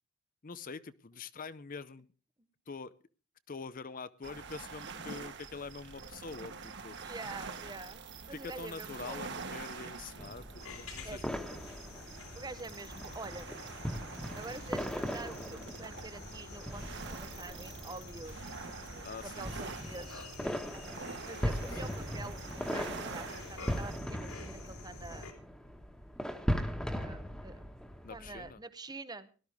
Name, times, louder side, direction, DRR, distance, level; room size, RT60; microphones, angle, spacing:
voice 1, 0.4-2.1 2.7-2.9 3.5-6.5 6.8-7.0 8.3-11.6 19.0-19.7 21.2-21.5 28.0-28.6, left 4 dB, 40° left, 15 dB, 0.6 m, -45 dB
sound 1, 4.2-24.0, right 4 dB, 55° right, 1.5 m, -46 dB
voice 2, 7.0-9.3 11.0-11.6 12.3-13.5 14.3-18.4 18.9-20.8 21.3-25.3 26.8-27.6 28.1-29.3, right 2 dB, 20° right, 12 dB, 0.8 m, -47 dB
sound 2, 9.9-28.5, equal, 5° left, 1.5 m, -40 dB
sound 3, 10.6-25.3, left 3 dB, 75° left, 3.6 m, -49 dB
18.0 x 12.5 x 3.5 m, 0.37 s
head